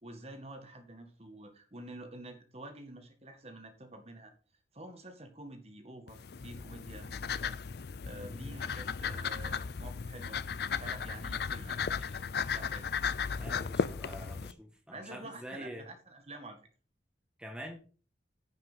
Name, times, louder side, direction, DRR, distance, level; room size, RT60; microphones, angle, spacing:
voice 1, 0.0-4.3 4.7-7.5 8.0-10.4 10.8-12.2 12.5-12.9 14.9-16.6, right 2 dB, 35° right, 1.8 m, -48 dB
sound 1, 6.1-14.5, left 6 dB, 55° left, 0.5 m, -35 dB
voice 2, 8.3-8.6 13.3-15.9 17.4-17.8, equal, 5° right, 1.8 m, -46 dB
9.7 x 6.0 x 5.6 m
head